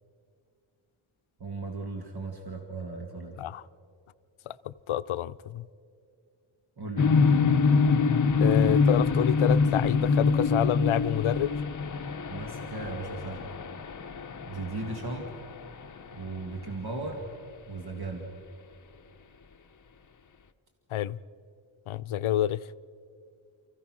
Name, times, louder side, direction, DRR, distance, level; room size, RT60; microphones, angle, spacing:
voice 1, 1.4-3.4 6.8-7.5 12.3-13.5 14.4-15.2 16.1-17.3 17.7-18.3, right 3 dB, 50° right, 2 dB, 2.1 m, -36 dB
voice 2, 4.5-5.7 8.4-11.5 20.9-21.2 21.9-22.6, left 12 dB, 90° left, 15 dB, 0.6 m, -28 dB
sound 1, 7.0-15.9, left 4 dB, 40° left, 0.8 m, -25 dB
29.0 x 15.0 x 6.2 m, 2.3 s
wide cardioid pair, 135°, 47 cm